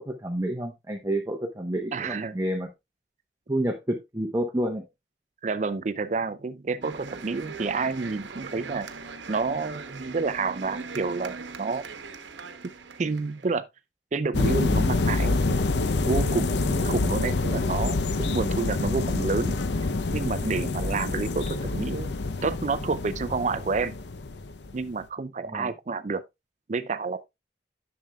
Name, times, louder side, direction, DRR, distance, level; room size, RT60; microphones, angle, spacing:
voice 1, 0.0-2.7 3.5-4.8 25.5-25.7, right 1 dB, 20° right, 0.9 m, -29 dB
voice 2, 1.9-2.4 5.4-8.9 9.3-11.8 13.0-13.6 14.1-15.6 16.1-19.6 20.1-22.1 22.4-23.9 24.7-26.2 26.7-27.3, right 4 dB, 40° right, 0.4 m, -29 dB
sound 1, 6.8-13.5, right 4 dB, 85° right, 1.0 m, -40 dB
sound 2, 14.3-24.8, left 3 dB, 70° left, 0.7 m, -27 dB
11.0 x 6.9 x 2.3 m
head